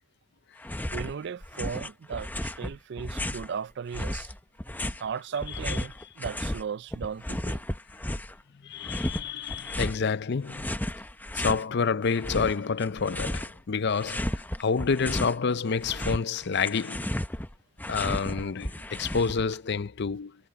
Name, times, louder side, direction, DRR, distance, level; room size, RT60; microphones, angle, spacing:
sound 1, 0.6-1.1 1.4-3.5 3.9-6.6 6.9-8.4 8.8-10.0 10.5-11.6 12.0-13.6 13.9-15.4 15.7-19.6, left 1 dB, 10° left, 0.8 m, -33 dB
voice 1, 0.9-4.3 5.0-7.6, right 6 dB, 60° right, 0.4 m, -36 dB
voice 2, 8.6-10.7 11.3-17.1 17.9-20.4, left 5 dB, 60° left, 0.6 m, -28 dB
head